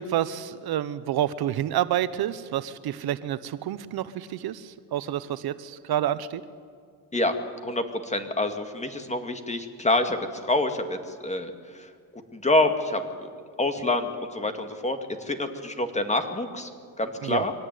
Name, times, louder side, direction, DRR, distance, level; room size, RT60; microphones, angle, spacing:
voice 1, 0.0-6.4 17.2-17.4, right 11 dB, 60° right, 14 dB, 1.0 m, -29 dB
voice 2, 7.6-11.9 12.3-13.3 13.6-16.7 17.0-17.5, left 2 dB, 15° left, 7 dB, 2.2 m, -27 dB
23.5 x 18.0 x 9.4 m, 2.1 s
cardioid pair, 100°, 41 cm